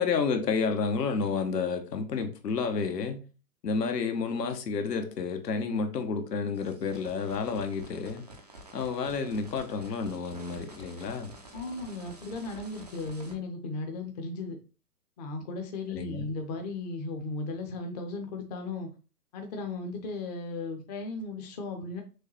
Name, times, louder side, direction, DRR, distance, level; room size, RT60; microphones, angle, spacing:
voice 1, 0.0-3.3 3.6-8.2 8.7-11.3 15.9-16.2, left 5 dB, 75° left, 1.0 m, -30 dB
sound 1, 6.5-13.3, right 1 dB, 30° right, 0.3 m, -49 dB
voice 2, 11.5-14.6 15.2-18.9 19.3-22.0, left 3 dB, 25° left, 0.6 m, -36 dB
6.3 x 2.2 x 3.1 m
hypercardioid pair, 135°, 49 cm